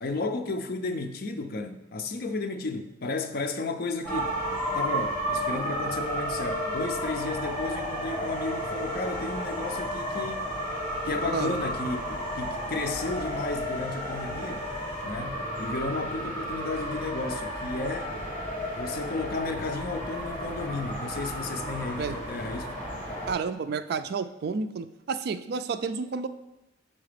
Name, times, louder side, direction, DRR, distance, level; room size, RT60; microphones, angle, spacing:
voice 1, 0.0-4.4 4.7-10.5 11.0-14.7 15.0-18.2 18.7-22.7, left 3 dB, 55° left, 0.5 m, -33 dB
sound 1, 4.0-23.3, equal, 10° left, 1.8 m, -32 dB
voice 2, 23.3-26.3, right 5 dB, 55° right, 0.3 m, -30 dB
5.7 x 4.0 x 5.0 m
head